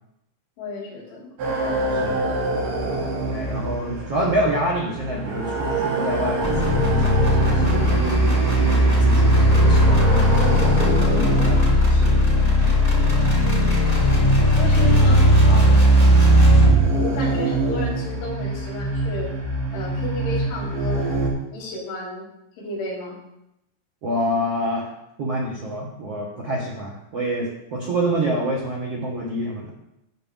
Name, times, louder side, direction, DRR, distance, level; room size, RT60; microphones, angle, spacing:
voice 1, 0.6-2.4 13.4-13.9 14.5-15.3 15.7-15.9 16.9-19.3 19.7-21.1 21.5-22.3 22.6-23.2, left 2 dB, 65° left, -5 dB, 5.2 m, -32 dB
sound 1, 1.4-21.3, right 2 dB, 55° right, 4.1 m, -26 dB
voice 2, 3.3-8.0 8.6-12.7 14.4-15.2 15.5-15.7 24.0-24.9 25.2-29.7, right 1 dB, 70° right, -4 dB, 1.4 m, -28 dB
sound 2, 6.4-16.9, equal, 15° left, 1.3 m, -17 dB
16.5 x 6.5 x 3.7 m, 0.83 s
omnidirectional pair, 5.9 m